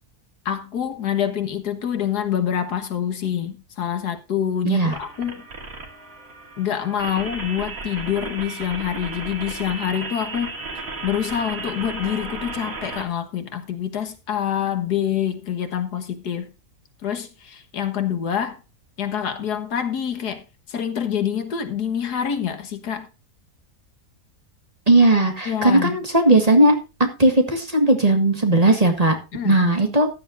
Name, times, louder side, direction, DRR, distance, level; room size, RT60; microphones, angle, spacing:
voice 1, 0.5-5.5 6.6-10.5 11.0-16.5 17.0-18.6 19.0-20.4 20.7-23.1 25.5-26.0 29.3-29.6, left 9 dB, 85° left, 1.9 m, -26 dB
voice 2, 4.6-5.0 24.9-29.2 29.4-30.1, right 2 dB, 25° right, 1.8 m, -17 dB
sound 1, 4.9-13.0, right 3 dB, 60° right, 2.6 m, -34 dB
14.5 x 10.5 x 2.6 m
omnidirectional pair, 1.7 m